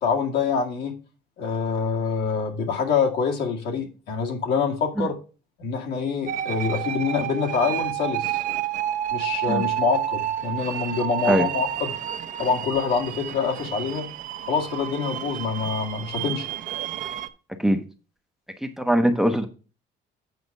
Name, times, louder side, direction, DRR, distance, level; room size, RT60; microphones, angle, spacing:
voice 1, 0.0-1.0 1.4-5.2 5.6-8.4 9.1-11.9 12.4-14.1 14.5-16.5, left 5 dB, 70° left, 2.1 m, -25 dB
sound 1, 6.3-17.3, right 12 dB, 50° right, 0.7 m, -30 dB
voice 2, 18.6-19.5, right 1 dB, ahead, 0.7 m, -21 dB
8.1 x 4.9 x 5.3 m
cardioid pair, 150°, 17 cm